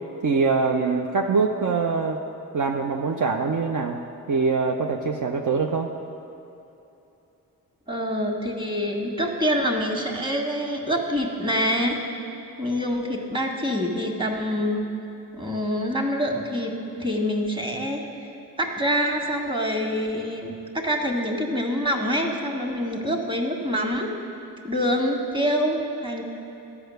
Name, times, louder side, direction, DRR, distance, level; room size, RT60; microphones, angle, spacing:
voice 1, 0.2-2.2 2.5-4.0 4.3-5.9, right 4 dB, 60° right, 3 dB, 0.7 m, -23 dB
voice 2, 7.9-12.0 12.6-14.8 15.3-18.0 18.6-24.1 24.6-26.2, equal, 15° right, 1 dB, 1.8 m, -26 dB
12.0 x 5.8 x 7.9 m, 2.9 s
cardioid pair, 50°, 35 cm